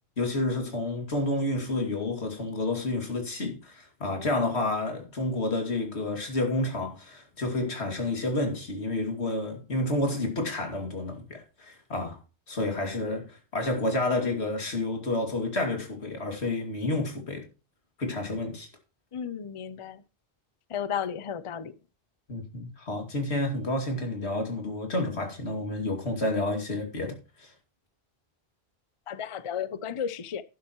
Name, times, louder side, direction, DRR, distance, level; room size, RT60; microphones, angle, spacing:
voice 1, 0.2-12.2 12.5-17.4 18.0-18.7 22.3-27.5, left 2 dB, 90° left, 2.7 m, -30 dB
voice 2, 19.1-20.0 20.7-21.7 29.1-30.4, left 8 dB, 40° left, 0.5 m, -33 dB
11.0 x 10.5 x 3.0 m
omnidirectional pair, 1.1 m